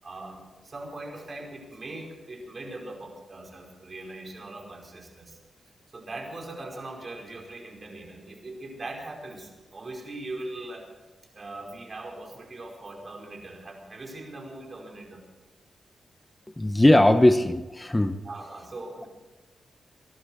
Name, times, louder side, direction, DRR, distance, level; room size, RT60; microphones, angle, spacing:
voice 1, 0.0-5.4 5.9-10.9 11.3-15.2 17.1-17.3 18.2-19.1, right 2 dB, 50° right, 1 dB, 5.0 m, -40 dB
voice 2, 16.6-18.1, left 1 dB, 20° left, 10 dB, 1.1 m, -19 dB
23.0 x 12.0 x 4.6 m, 1.2 s
supercardioid pair, 40°, 0 cm